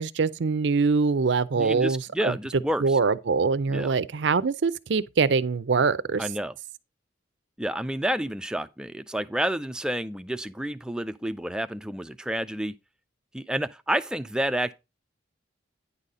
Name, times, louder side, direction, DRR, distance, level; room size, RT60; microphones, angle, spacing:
voice 1, 0.0-2.3 2.8-6.2, right 4 dB, 65° right, 0.5 m, -24 dB
voice 2, 1.6-3.0 3.7-3.9 6.2-6.5 7.6-12.7 13.3-14.7, right 1 dB, 5° right, 0.4 m, -29 dB
9.8 x 4.1 x 4.9 m
head